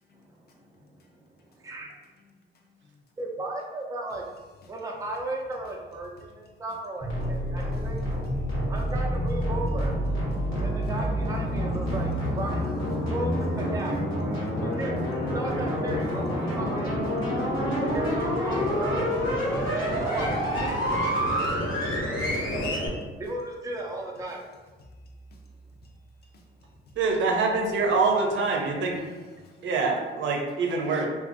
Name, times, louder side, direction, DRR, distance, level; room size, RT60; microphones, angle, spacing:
voice 1, 1.5-1.9 3.2-4.2 4.7-8.0 8.7-9.9 10.6-12.6 13.1-13.9 14.6-15.0 15.3-16.9 17.8-19.1 20.0-20.5 23.2-24.5, right 2 dB, 15° right, 0 dB, 0.4 m, -35 dB
sound 1, 7.0-22.9, equal, 80° left, 1.0 m, -27 dB
voice 2, 17.3-17.6 19.5-20.1 20.8-20.9 22.2-22.3 26.3-26.4 29.0-29.5, left 2 dB, 55° left, 1 dB, 0.6 m, -56 dB
voice 3, 27.0-29.0 29.6-31.1, right 4 dB, 70° right, 1 dB, 0.6 m, -25 dB
2.6 x 2.3 x 2.5 m, 1.3 s
cardioid pair, 90°, 20 cm